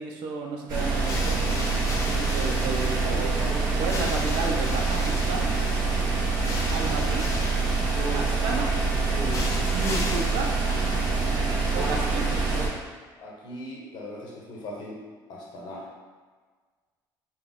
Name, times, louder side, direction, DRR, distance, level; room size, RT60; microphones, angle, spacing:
voice 1, 0.0-3.4 3.8-5.5 6.7-7.3 8.1-8.7 9.7-10.6 11.7-12.3, right 3 dB, 75° right, 1 dB, 0.6 m, -32 dB
sound 1, 0.7-12.7, right 4 dB, 45° right, 1.4 m, -25 dB
sound 2, 0.9-11.5, left 2 dB, 40° left, 0.6 m, -37 dB
voice 2, 3.7-4.1 13.2-15.0 15.3-15.9, left 1 dB, 55° left, -2 dB, 0.9 m, -40 dB
4.1 x 2.3 x 3.6 m, 1.5 s
cardioid pair, 150°, 9 cm